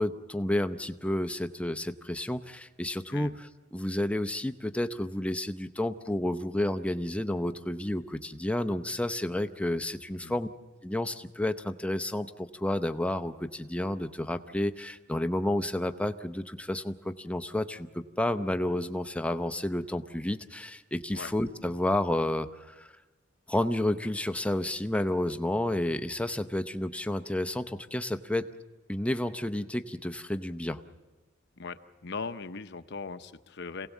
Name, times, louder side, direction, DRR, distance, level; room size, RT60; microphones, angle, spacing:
voice 1, 0.0-10.5 10.8-22.9 23.5-28.5 28.9-30.8, left 1 dB, 5° left, 9 dB, 0.7 m, -31 dB
voice 2, 31.6-33.9, left 4 dB, 55° left, 10 dB, 0.8 m, -39 dB
27.0 x 17.5 x 7.3 m, 1.2 s
head